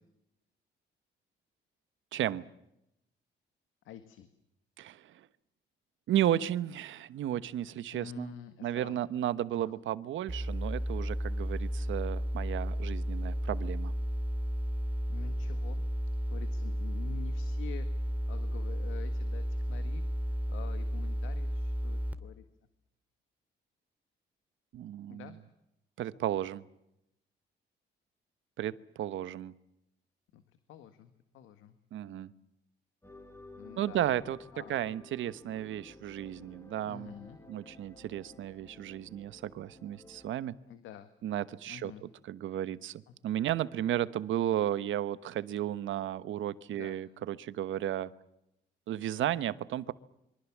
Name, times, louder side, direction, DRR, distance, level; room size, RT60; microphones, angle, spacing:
voice 1, 2.1-2.4 4.8-5.3 6.1-8.3 8.6-13.9 24.7-25.3 26.0-26.6 28.6-29.5 31.9-32.3 33.8-34.4 34.7-37.1 37.5-40.5 41.2-48.1 48.9-49.9, right 12 dB, 75° right, 15 dB, 1.1 m, -34 dB
voice 2, 3.9-4.3 7.9-9.0 9.5-9.8 15.1-15.8 16.3-17.9 18.3-22.4 25.1-25.4 30.3-30.4 30.7-31.8 33.6-34.1 34.5-34.8 36.8-37.4 40.7-41.1 41.6-42.0 43.1-43.2 46.7-47.0, left 9 dB, 90° left, 9 dB, 1.8 m, -48 dB
sound 1, 10.3-22.1, equal, 5° right, 2.4 m, -33 dB
sound 2, 33.0-40.3, left 2 dB, 10° left, 4.0 m, -53 dB
27.5 x 24.0 x 7.3 m, 0.84 s
cardioid pair, 90°, 20 cm